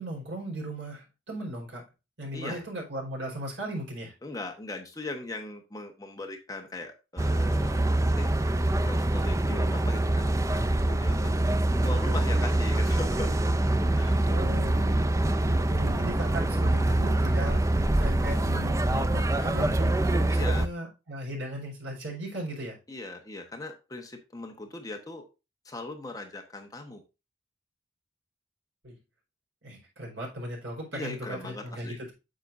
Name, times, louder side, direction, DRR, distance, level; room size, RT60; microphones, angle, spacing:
voice 1, 0.0-1.8 2.2-4.1 14.2-22.8 28.8-29.0 29.6-32.1, right 1 dB, 65° right, -2 dB, 4.5 m, -37 dB
voice 2, 4.2-7.8 8.2-8.3 8.8-11.3 11.8-13.3 13.9-14.2 16.3-16.7 20.3-20.6 22.9-25.2 25.6-27.0 30.9-32.0, left 2 dB, 20° left, 3 dB, 1.1 m, -39 dB
sound 1, 7.2-20.7, right 1 dB, 15° right, 0.4 m, -25 dB
9.0 x 6.8 x 2.6 m, 0.27 s
head